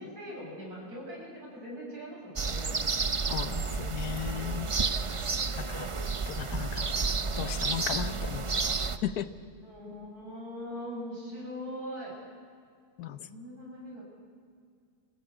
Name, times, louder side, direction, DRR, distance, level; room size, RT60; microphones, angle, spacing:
voice 1, 0.0-2.8 6.0-6.6 9.6-12.2 13.2-14.0, equal, 70° right, -2 dB, 6.9 m, -41 dB
sound 1, 2.4-9.0, right 4 dB, 45° right, 0.4 m, -31 dB
voice 2, 3.3-4.7 5.6-5.9 6.3-6.9 7.4-8.5 9.0-9.3 13.0-13.3, left 11 dB, 70° left, 13 dB, 1.3 m, -36 dB
27.0 x 15.5 x 8.8 m, 2.1 s
omnidirectional pair, 1.7 m